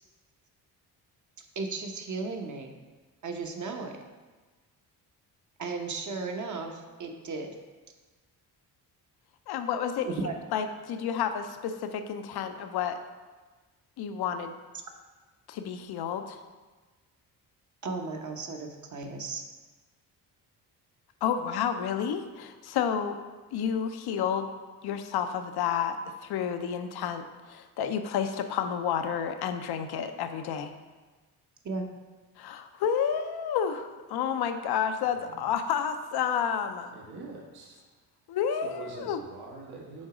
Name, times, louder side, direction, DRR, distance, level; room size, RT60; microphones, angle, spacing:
voice 1, 1.5-2.7 3.2-4.0 5.6-7.6 10.0-10.4 17.8-19.4 31.6-31.9, right 3 dB, 45° right, 3 dB, 1.0 m, -35 dB
voice 2, 9.5-10.1 10.5-13.0 14.0-14.5 15.5-16.4 21.2-23.2 23.5-24.5 24.8-30.7 32.4-36.9 38.3-39.2, left 8 dB, 70° left, 8 dB, 0.6 m, -30 dB
voice 3, 35.1-35.5 36.9-37.8 38.6-40.1, right 4 dB, 70° right, -1 dB, 1.3 m, -44 dB
6.3 x 4.0 x 4.9 m, 1.3 s
cardioid pair, 80°, 40 cm